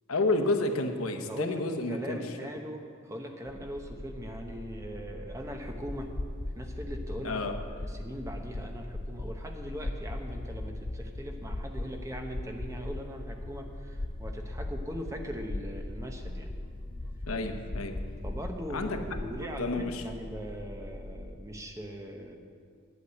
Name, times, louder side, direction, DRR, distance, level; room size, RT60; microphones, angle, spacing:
voice 1, 0.1-2.2 7.2-7.5 17.3-17.9 18.7-19.0 19.6-20.0, left 2 dB, 80° left, 6 dB, 1.0 m, -30 dB
voice 2, 1.3-1.6 1.9-6.1 6.6-7.4 7.7-16.5 18.2-22.4, equal, 15° right, 3 dB, 0.9 m, -40 dB
sound 1, 3.4-21.2, left 1 dB, 75° right, 3.6 m, -44 dB
sound 2, 5.4-19.4, left 2 dB, 25° left, 0.4 m, -40 dB
9.8 x 8.4 x 8.2 m, 2.1 s
head